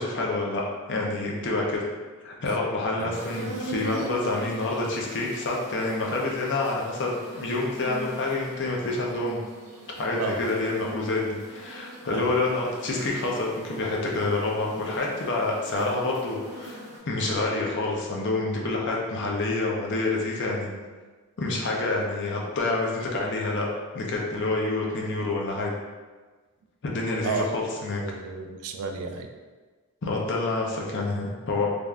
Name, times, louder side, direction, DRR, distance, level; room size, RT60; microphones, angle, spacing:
voice 1, 0.0-1.9 2.2-9.4 10.0-16.8 17.1-20.7 21.4-23.7 23.9-25.7 26.8-28.0 30.0-31.7, left 2 dB, 55° left, -2 dB, 0.5 m, -28 dB
sound 1, 3.1-17.0, right 1 dB, 50° right, 0.7 m, -41 dB
voice 2, 28.0-29.3, right 4 dB, 75° right, 5 dB, 0.3 m, -32 dB
3.3 x 2.5 x 2.2 m, 1.3 s
head